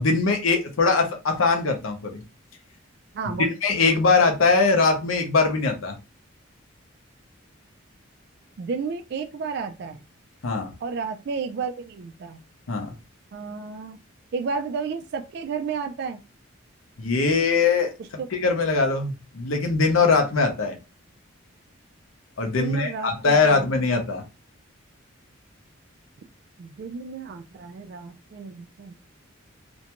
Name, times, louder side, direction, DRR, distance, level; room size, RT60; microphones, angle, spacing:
voice 1, 0.0-2.2 3.6-6.0 10.4-10.7 12.7-12.9 17.0-17.9 18.3-20.8 22.4-24.2, left 4 dB, 80° left, 0.6 m, -21 dB
voice 2, 3.1-3.5 8.6-10.0 10.8-12.4 13.3-14.0 14.3-16.2 18.2-18.3 22.6-23.7 26.6-28.9, right 5 dB, 50° right, 0.3 m, -32 dB
2.4 x 2.2 x 2.8 m
head